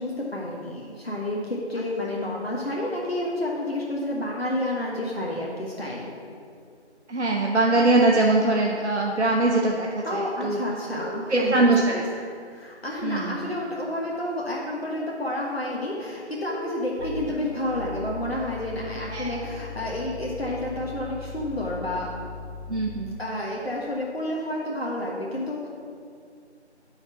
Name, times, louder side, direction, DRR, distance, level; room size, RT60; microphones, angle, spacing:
voice 1, 0.0-6.1 10.0-12.0 12.5-22.1 23.2-25.7, left 1 dB, 60° left, -4 dB, 1.4 m, -30 dB
voice 2, 7.1-10.6 11.3-12.0 13.0-13.5 19.1-19.4 22.7-23.2, right 2 dB, 75° right, 0 dB, 0.9 m, -22 dB
sound 1, 10.9-11.8 13.0-13.1 16.5-16.8, right 3 dB, 60° right, 2.1 m, -35 dB
sound 2, 17.0-23.1, left 4 dB, 40° left, 1.4 m, -38 dB
6.8 x 5.7 x 7.0 m, 2.3 s
figure-of-eight pair, 175°, 35 cm